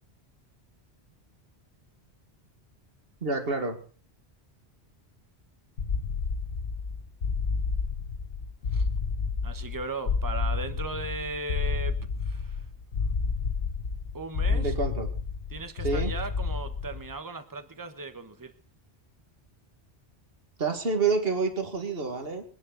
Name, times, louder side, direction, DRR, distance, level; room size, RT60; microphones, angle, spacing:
voice 1, 3.2-3.8 14.5-15.1 15.8-16.1 20.6-22.4, right 4 dB, 60° right, 2.4 m, -28 dB
sound 1, 5.8-17.1, left 5 dB, 90° left, 1.6 m, -30 dB
voice 2, 9.4-12.7 14.1-14.7 15.5-18.5, right 3 dB, 20° right, 1.2 m, -37 dB
25.0 x 9.9 x 4.0 m
omnidirectional pair, 1.1 m